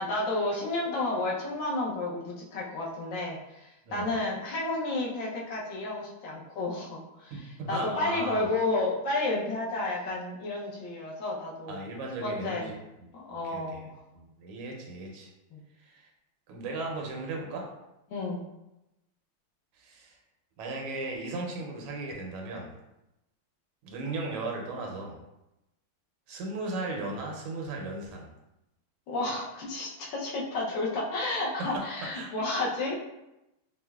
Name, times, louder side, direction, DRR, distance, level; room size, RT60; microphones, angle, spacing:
voice 1, 0.0-7.3 7.7-11.8 12.2-12.7 13.1-13.9 15.5-15.6 18.1-18.4 29.1-33.0, left 2 dB, 70° left, -3 dB, 1.3 m, -31 dB
voice 2, 7.3-8.5 11.7-12.7 13.0-13.9 14.1-15.3 15.8-16.1 16.5-17.7 19.7-20.2 20.6-22.7 23.8-25.2 26.3-28.3 31.6-31.9 32.1-32.3, right 2 dB, 85° right, 0 dB, 1.6 m, -36 dB
5.1 x 2.0 x 2.2 m, 0.92 s
omnidirectional pair, 2.4 m